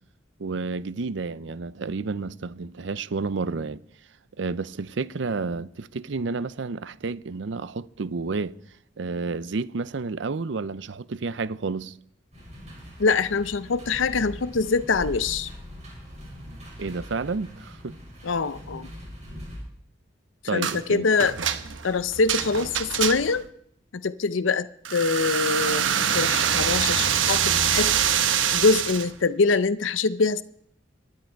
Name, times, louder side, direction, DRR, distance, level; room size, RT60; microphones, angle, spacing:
voice 1, 0.4-3.8 4.4-8.5 9.0-12.0 16.8-18.0 20.4-21.0, right 4 dB, 70° right, 0.6 m, -30 dB
sound 1, 12.3-19.6, equal, 35° right, 6.4 m, -41 dB
voice 2, 13.0-15.5 18.2-18.9 20.5-21.3 21.8-23.4 23.9-24.7 24.9-27.9 28.5-30.4, left 4 dB, 85° left, 0.6 m, -24 dB
sound 2, 20.6-20.8 21.2-23.5 24.8-29.1, right 8 dB, 85° right, 1.0 m, -24 dB
25.5 x 10.5 x 4.6 m
head